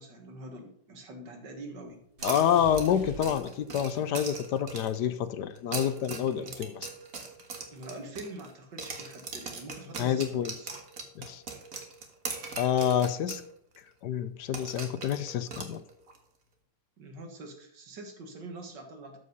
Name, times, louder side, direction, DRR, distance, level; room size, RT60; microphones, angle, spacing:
voice 1, 0.0-2.0 6.3-6.9 7.7-10.7 17.0-19.2, right 2 dB, 65° right, 4 dB, 2.3 m, -45 dB
voice 2, 2.2-6.9 10.0-10.5 11.2-11.4 12.6-13.4 14.0-15.8, left 9 dB, 70° left, 13 dB, 1.2 m, -28 dB
sound 1, 2.2-4.0, equal, 30° right, 2.0 m, -45 dB
sound 2, 2.2-5.1 5.6-8.5 8.8-13.5 13.7-13.8 14.5-16.2, right 4 dB, 45° right, 1.8 m, -40 dB
13.0 x 5.4 x 5.4 m, 0.69 s
omnidirectional pair, 2.0 m